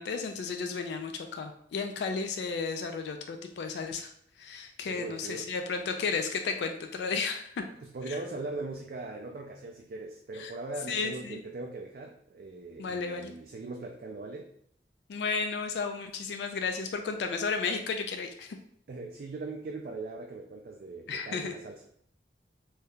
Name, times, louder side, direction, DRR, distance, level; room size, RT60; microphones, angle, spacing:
voice 1, 0.0-4.1 4.4-7.5 8.1-8.2 10.3-10.5 10.9-11.4 12.8-13.3 15.1-18.6 21.1-21.5, left 5 dB, 75° left, 6 dB, 0.3 m, -33 dB
voice 2, 4.8-5.5 7.8-14.5 18.9-21.9, right 3 dB, 55° right, 1 dB, 0.3 m, -40 dB
2.7 x 2.3 x 3.5 m, 0.66 s
head